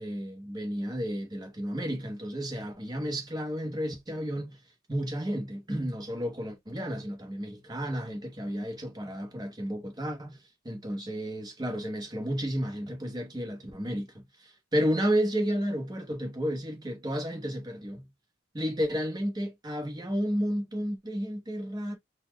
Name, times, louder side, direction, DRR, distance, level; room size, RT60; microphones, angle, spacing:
voice 1, 0.0-4.6 4.9-10.4 10.6-18.1 18.5-22.0, equal, 20° right, 1.0 m, -32 dB
4.1 x 2.3 x 3.2 m
head